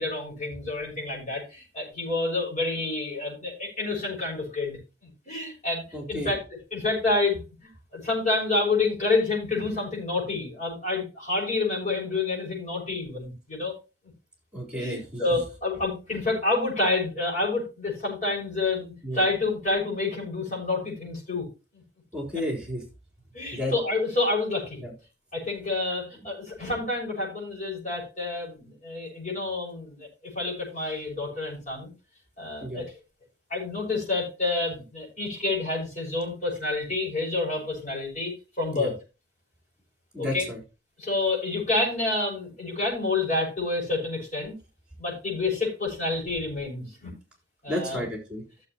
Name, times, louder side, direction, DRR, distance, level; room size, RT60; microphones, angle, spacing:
voice 1, 0.0-6.4 6.7-7.4 7.9-13.8 14.7-21.5 21.7-21.8 23.3-24.8 25.3-31.9 32.4-32.9 33.5-38.9 40.2-40.5 41.0-44.5 45.0-47.1 47.6-48.0, left 3 dB, 45° left, -3 dB, 6.2 m, -28 dB
voice 2, 5.9-6.3 14.5-15.4 19.0-19.2 22.1-22.8 23.5-23.7 24.8-24.9 32.6-32.8 38.7-38.9 40.1-40.6 47.7-48.4, left 1 dB, 5° right, 0 dB, 3.8 m, -32 dB
15.5 x 7.2 x 2.9 m, 0.28 s
head